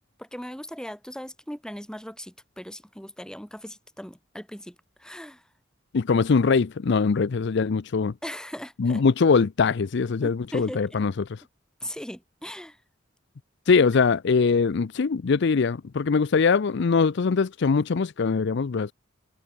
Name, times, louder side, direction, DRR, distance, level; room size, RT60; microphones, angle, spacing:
voice 1, 0.2-5.4 8.2-9.0 10.2-10.8 11.8-12.8, equal, 5° left, 2.7 m, -38 dB
voice 2, 5.9-8.1 8.8-11.3 13.7-18.9, left 5 dB, 60° left, 0.5 m, -22 dB
head